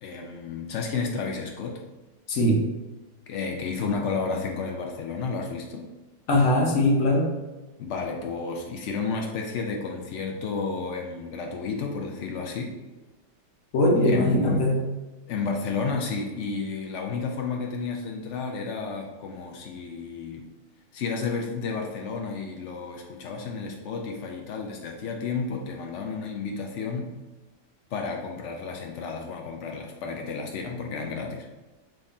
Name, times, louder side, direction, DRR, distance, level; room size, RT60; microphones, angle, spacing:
voice 1, 0.0-1.8 3.3-5.9 7.8-12.8 14.0-14.6 15.3-20.4 20.9-27.1 27.9-31.4, left 4 dB, 90° left, 1 dB, 0.6 m, -32 dB
voice 2, 2.3-2.6 6.3-7.3 13.7-14.8, left 1 dB, 60° left, -1 dB, 1.0 m, -21 dB
3.6 x 3.3 x 4.1 m, 1.1 s
omnidirectional pair, 1.8 m